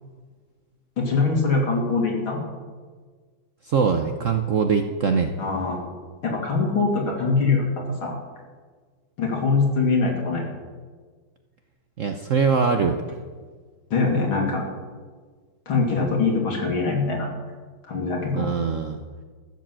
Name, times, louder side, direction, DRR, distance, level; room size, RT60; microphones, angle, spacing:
voice 1, 1.0-2.4 5.4-5.9 6.2-7.6 8.0-8.2 9.2-10.5 13.9-14.6 15.7-17.3 17.8-18.5, left 4 dB, 90° left, 0 dB, 3.5 m, -23 dB
voice 2, 3.6-5.3 12.0-13.0 18.3-19.0, right 5 dB, 65° right, 6 dB, 0.8 m, -22 dB
14.5 x 7.5 x 7.5 m, 1.5 s
omnidirectional pair, 2.2 m